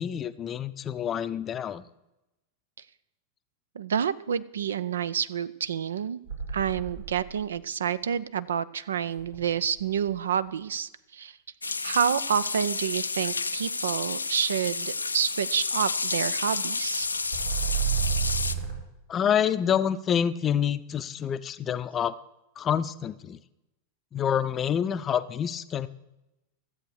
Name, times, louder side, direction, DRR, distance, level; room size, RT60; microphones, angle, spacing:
voice 1, 0.0-1.8 19.1-22.1 22.6-23.4 24.1-25.9, left 8 dB, 25° left, 13 dB, 0.6 m, -27 dB
voice 2, 3.8-6.2 6.5-11.4 11.8-17.1, right 8 dB, 65° right, 17 dB, 0.4 m, -28 dB
sound 1, 6.3-7.5 9.2-10.1 17.0-18.7, right 7 dB, 85° right, 3.4 m, -30 dB
sound 2, 11.6-18.6, left 4 dB, 80° left, 0.5 m, -30 dB
13.5 x 7.9 x 6.3 m, 0.93 s
figure-of-eight pair, 90°, 0 cm